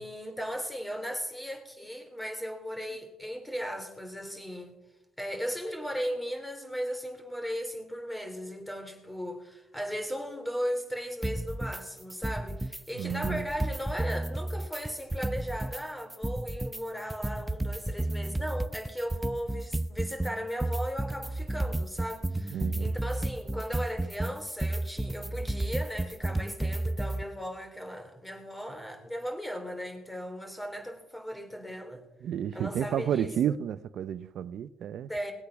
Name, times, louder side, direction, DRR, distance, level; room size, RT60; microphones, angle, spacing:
voice 1, 0.0-4.7 5.2-32.0 32.5-33.3 35.1-35.3, equal, 10° left, 3.3 m, -37 dB
sound 1, 11.2-11.8 12.1-12.8 13.1-15.8 16.1-27.2, right 1 dB, 10° right, 0.6 m, -32 dB
voice 2, 12.9-13.5 22.5-22.9 32.2-35.1, right 9 dB, 70° right, 0.6 m, -31 dB
20.0 x 8.4 x 6.0 m
cardioid pair, 90°, 0 cm